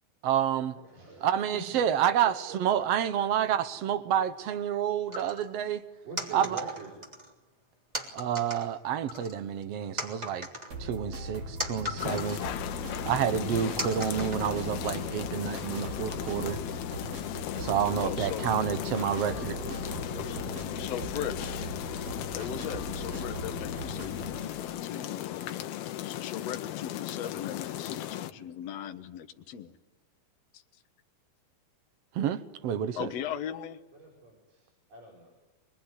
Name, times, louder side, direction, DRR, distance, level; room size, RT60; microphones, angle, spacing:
voice 1, 0.2-0.7 1.2-5.8 6.3-6.6 8.1-10.5 10.8-12.4 13.0-16.6 17.6-19.5 32.1-33.1, right 9 dB, 80° right, 11 dB, 1.4 m, -29 dB
voice 2, 0.8-1.6 2.5-2.6 3.0-3.2 6.0-6.9 18.0-20.6 34.0-35.3, right 3 dB, 60° right, -2 dB, 6.7 m, -46 dB
sound 1, 5.1-5.5 6.2-7.3 7.9-8.7 9.1-9.6 10.0-12.5 12.9-13.0 13.8-14.9, left 1 dB, 10° right, 3.2 m, -38 dB
sound 2, 10.7-24.4, right 1 dB, 40° right, 7.4 m, -39 dB
sound 3, 12.0-28.3, left 13 dB, 80° left, 2.9 m, -36 dB
voice 3, 18.0-18.5 20.3-20.4 20.8-21.6 22.3-25.6 26.0-29.8 32.9-33.8, left 9 dB, 60° left, 6 dB, 2.0 m, -38 dB
24.5 x 21.5 x 9.9 m, 1.1 s
omnidirectional pair, 4.4 m